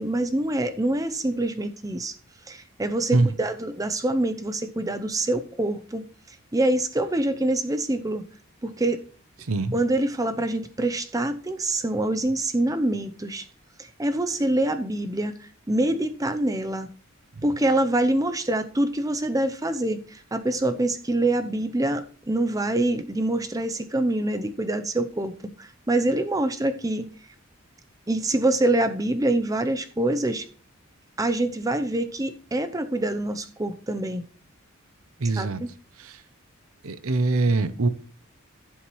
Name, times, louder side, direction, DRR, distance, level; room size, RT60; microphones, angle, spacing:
voice 1, 0.0-2.1 2.5-6.0 6.5-8.2 8.6-9.0 9.7-13.5 13.8-15.4 15.7-16.9 17.4-27.1 28.1-30.5 31.2-34.3 35.4-35.7, right 1 dB, 15° right, 0.7 m, -25 dB
voice 2, 9.4-9.7 17.4-17.5 35.2-35.6 36.0-36.2 36.8-37.9, right 2 dB, 75° right, 0.8 m, -23 dB
15.5 x 7.1 x 3.2 m
head